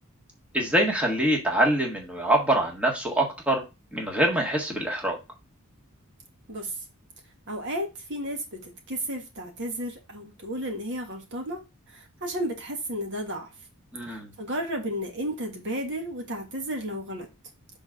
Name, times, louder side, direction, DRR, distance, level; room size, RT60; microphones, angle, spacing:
voice 1, 0.5-3.6 3.9-5.2 13.9-14.3, right 1 dB, 5° right, 1.7 m, -24 dB
voice 2, 7.5-11.6 11.9-13.5 14.1-17.3, equal, 55° right, 1.6 m, -33 dB
6.2 x 3.9 x 4.8 m
head